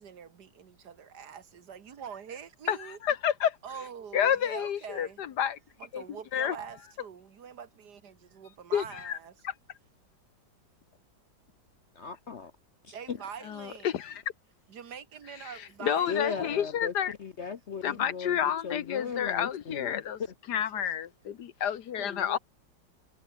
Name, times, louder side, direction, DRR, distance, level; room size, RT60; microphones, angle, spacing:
voice 1, 0.0-3.0 3.6-5.2 5.8-9.3 12.9-13.9 14.7-16.5 20.7-20.8 22.0-22.4, right 7 dB, 60° right, 1.9 m, -44 dB
voice 2, 2.7-3.6 4.1-5.6 5.9-6.0 6.3-6.6 8.7-9.2 9.4-9.5 13.4-14.2 15.4-17.1 17.8-20.2 20.5-22.4, left 9 dB, 65° left, 1.5 m, -30 dB
voice 3, 11.9-12.5 12.8-13.2 16.1-16.9 17.2-20.0 22.1-22.4, left 6 dB, 50° left, 1.0 m, -37 dB
omnidirectional pair, 2.0 m